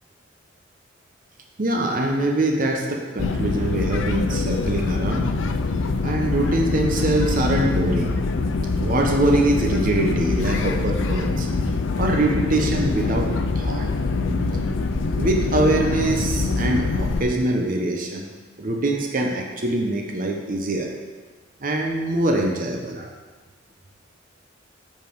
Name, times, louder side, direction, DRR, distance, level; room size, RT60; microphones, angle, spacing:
voice 1, 1.6-5.3 6.0-8.2 8.8-11.5 12.0-13.8 15.2-18.2 18.6-20.9 21.6-23.1, right 2 dB, 45° right, 1 dB, 0.8 m, -23 dB
sound 1, 3.2-17.2, left 3 dB, 85° left, 0.5 m, -24 dB
7.5 x 5.2 x 4.6 m, 1.3 s
head